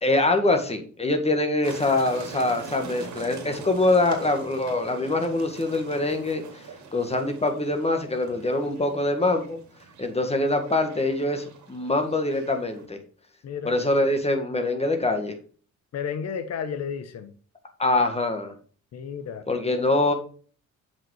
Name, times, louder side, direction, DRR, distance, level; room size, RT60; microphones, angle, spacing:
voice 1, 0.0-9.6 10.0-13.0 13.6-15.4 17.8-18.5 19.5-20.1, left 2 dB, 20° left, 1.8 m, -24 dB
sound 1, 1.6-12.8, right 5 dB, 70° right, 2.4 m, -43 dB
voice 2, 15.9-17.3 18.9-19.4, left 7 dB, 55° left, 1.1 m, -32 dB
7.3 x 5.4 x 4.8 m
cardioid pair, 90°, 30 cm